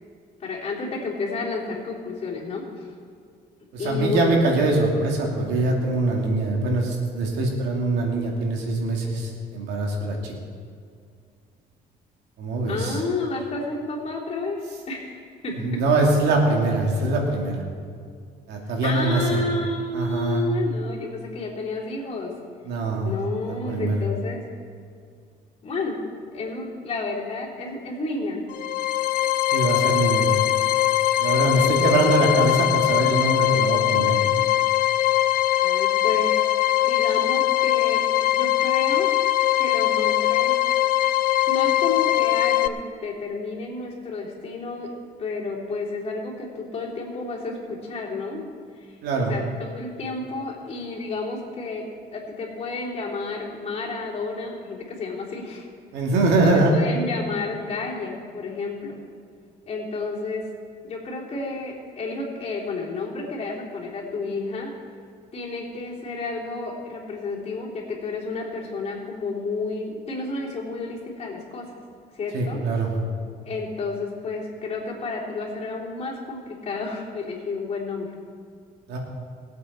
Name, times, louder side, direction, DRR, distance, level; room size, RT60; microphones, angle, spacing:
voice 1, 0.4-2.9 3.8-4.4 12.7-15.1 15.4-15.6 18.8-22.3 23.0-24.4 25.6-26.0 26.3-28.4 31.4-32.0 35.6-36.4 36.8-39.1 39.6-40.6 41.5-44.9 45.2-48.5 48.8-49.0 49.3-51.9 52.1-55.7 56.4-59.0 59.7-60.4 60.8-64.7 65.3-71.7 72.1-72.6 73.5-78.1, left 3 dB, 40° left, -4 dB, 3.6 m, -31 dB
voice 2, 3.7-10.3 12.4-13.0 15.6-17.6 18.5-19.4 19.9-20.4 22.6-23.1 23.4-24.0 29.5-30.3 31.2-34.2 49.0-49.3 55.9-56.7 72.3-72.9 78.9-79.0, right 2 dB, 85° right, 0 dB, 2.7 m, -23 dB
sound 1, 28.5-42.7, left 14 dB, 55° left, 0.5 m, -21 dB
21.5 x 8.3 x 4.4 m, 2.2 s
cardioid pair, 110°, 17 cm